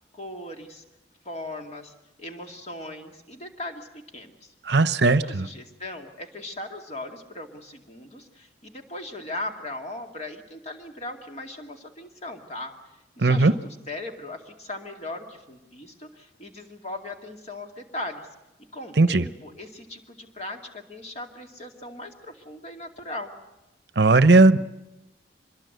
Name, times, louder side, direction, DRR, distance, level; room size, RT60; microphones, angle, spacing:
voice 1, 0.1-0.8 1.2-4.5 5.0-12.7 13.2-18.3 18.7-23.3, left 2 dB, 35° left, 4 dB, 2.4 m, -38 dB
voice 2, 4.7-5.2 13.2-13.5 19.0-19.2 24.0-24.6, right 3 dB, 60° right, 14 dB, 0.8 m, -16 dB
25.0 x 21.5 x 8.0 m, 0.97 s
head